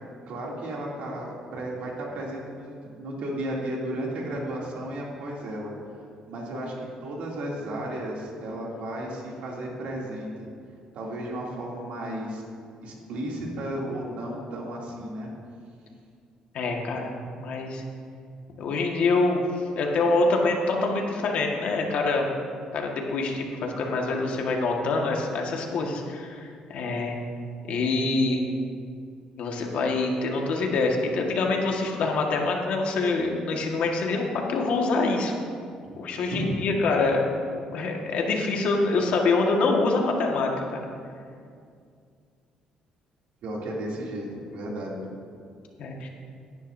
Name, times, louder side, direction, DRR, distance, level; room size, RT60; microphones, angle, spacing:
voice 1, 0.3-5.7 6.3-10.5 10.9-12.4 12.8-15.3 35.8-36.5 43.4-45.0, right 1 dB, 70° right, -3 dB, 2.8 m, -34 dB
voice 2, 16.5-17.1 17.4-17.8 18.6-22.3 22.7-27.2 27.7-28.4 29.4-35.4 36.0-37.4 37.7-40.8 45.8-46.1, left 3 dB, 70° left, 0 dB, 1.7 m, -25 dB
16.5 x 10.5 x 2.7 m, 2.3 s
cardioid pair, 100°, 2 cm